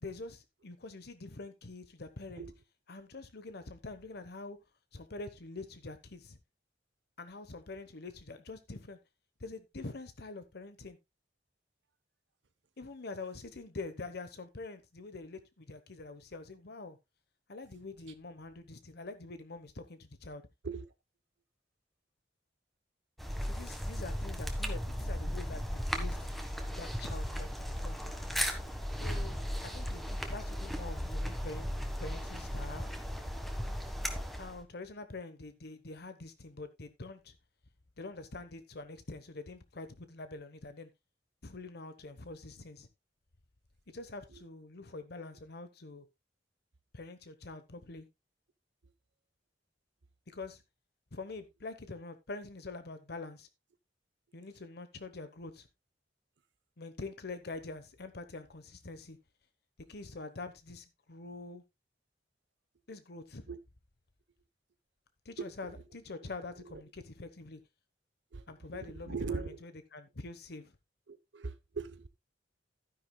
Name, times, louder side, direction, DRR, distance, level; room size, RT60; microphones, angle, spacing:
voice 1, 0.0-2.5 2.9-4.6 4.9-6.4 7.2-9.0 9.4-11.0 12.8-17.0 17.5-20.4 23.4-26.3 26.8-28.0 29.0-31.7 32.0-32.9 34.4-37.4 38.0-40.9 41.4-42.9 43.9-46.1 46.9-48.1 50.3-50.6 51.1-53.5 54.3-55.7 56.8-59.2 59.9-61.6 62.9-63.4 65.2-67.6 68.5-70.7, left 3 dB, 60° left, 1.0 m, -45 dB
sound 1, 23.2-34.6, equal, ahead, 1.4 m, -36 dB
voice 2, 68.7-69.6 71.1-72.1, right 4 dB, 85° right, 0.8 m, -40 dB
12.0 x 10.0 x 2.2 m
head